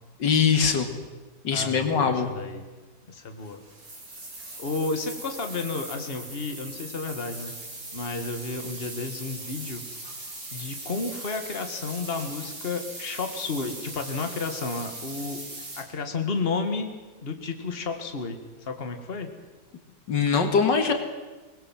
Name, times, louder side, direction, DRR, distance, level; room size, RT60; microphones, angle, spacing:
voice 1, 0.2-0.9 1.4-2.3 20.1-20.9, left 6 dB, 80° left, 6 dB, 2.5 m, -22 dB
voice 2, 1.5-2.7 3.1-3.6 4.6-7.5 7.9-9.8 10.5-15.4 15.8-16.9 17.2-19.3, left 4 dB, 35° left, 6 dB, 2.0 m, -32 dB
sound 1, 3.4-15.8, right 2 dB, 80° right, 5.5 m, -40 dB
23.0 x 20.0 x 7.5 m, 1.3 s
omnidirectional pair, 1.9 m